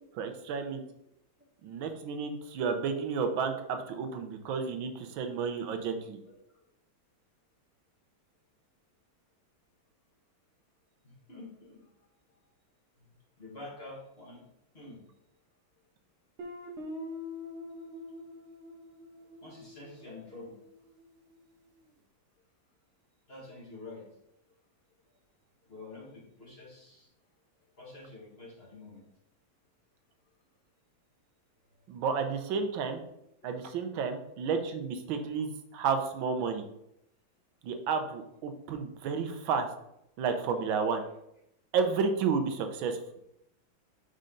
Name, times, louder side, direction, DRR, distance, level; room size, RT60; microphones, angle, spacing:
voice 1, 0.1-0.8 1.6-6.2 31.9-33.0 33.4-36.6 37.6-39.7 40.2-41.0 41.7-43.0, right 5 dB, 85° right, 6 dB, 1.5 m, -31 dB
voice 2, 11.0-11.8 13.4-14.5 14.7-15.0 19.4-20.5 23.3-24.1 25.7-27.1 27.8-29.0, left 2 dB, 30° left, -4 dB, 1.7 m, -47 dB
Guitar, 16.4-21.1, left 2 dB, 50° right, 0.9 m, -44 dB
5.5 x 5.0 x 3.9 m, 0.79 s
omnidirectional pair, 2.1 m